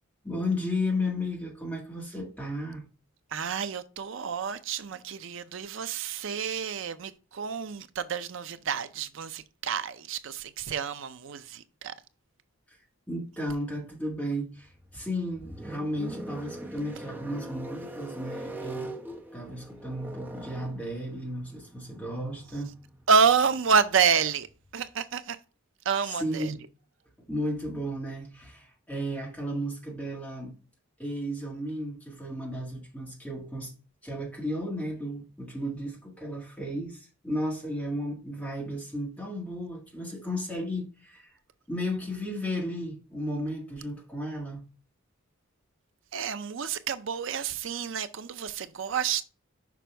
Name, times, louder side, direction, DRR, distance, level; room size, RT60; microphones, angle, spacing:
voice 1, 0.2-2.8 12.7-12.8 13.1-18.9 19.3-22.7 26.0-26.6 27.3-30.5 31.0-33.7 34.0-41.4 41.7-44.6, equal, 5° left, 1.6 m, -34 dB
voice 2, 3.3-11.9 23.1-24.5 24.7-25.4 25.9-26.5 46.1-49.2, right 6 dB, 60° right, 0.5 m, -28 dB
sound 1, 14.6-24.9, right 1 dB, 10° right, 0.7 m, -43 dB
6.1 x 5.1 x 3.3 m
head